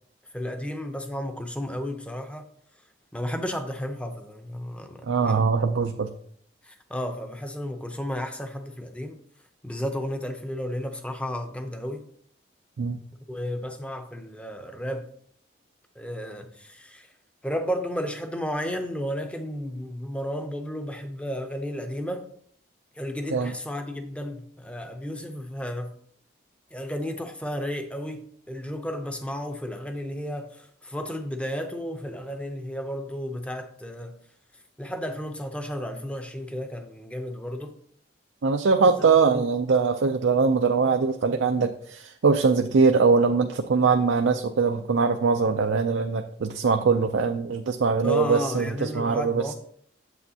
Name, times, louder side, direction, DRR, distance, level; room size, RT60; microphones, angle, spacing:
voice 1, 0.3-2.5 3.1-5.6 6.6-9.2 9.6-12.0 13.3-15.1 16.0-17.1 17.4-22.3 22.9-25.9 26.7-34.2 34.8-37.7 38.8-39.5 48.0-49.5, equal, 5° left, 0.6 m, -33 dB
voice 2, 5.1-6.1 12.8-13.0 23.3-23.5 38.4-49.4, right 5 dB, 85° right, 0.5 m, -22 dB
8.3 x 7.6 x 2.8 m
head